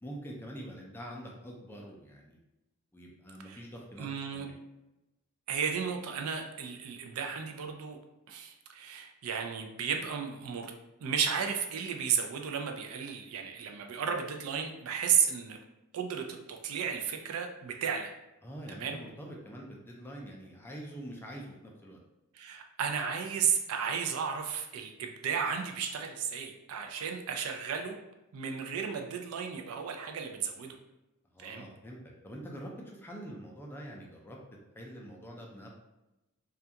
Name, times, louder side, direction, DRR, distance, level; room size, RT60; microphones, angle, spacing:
voice 1, 0.0-2.4 2.9-4.1 4.3-4.5 18.4-22.0 31.3-34.4 34.7-35.7, equal, 10° left, -1 dB, 0.3 m, -45 dB
voice 2, 4.0-4.5 5.5-8.0 8.3-10.7 11.0-15.6 15.9-18.1 18.8-19.0 22.3-28.0 28.3-30.8 31.4-31.6, right 7 dB, 75° right, 4 dB, 0.4 m, -33 dB
2.3 x 2.2 x 2.7 m, 0.97 s
head